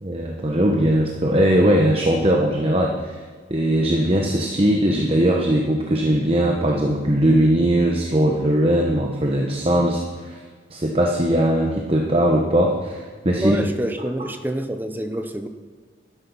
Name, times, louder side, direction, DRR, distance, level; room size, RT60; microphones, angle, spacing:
voice 1, 0.0-3.2 3.5-10.4 10.7-13.6, right 1 dB, 30° right, 1 dB, 1.0 m, -20 dB
voice 2, 13.3-15.5, right 1 dB, 10° right, 8 dB, 0.7 m, -27 dB
12.5 x 10.0 x 5.5 m, 1.5 s
head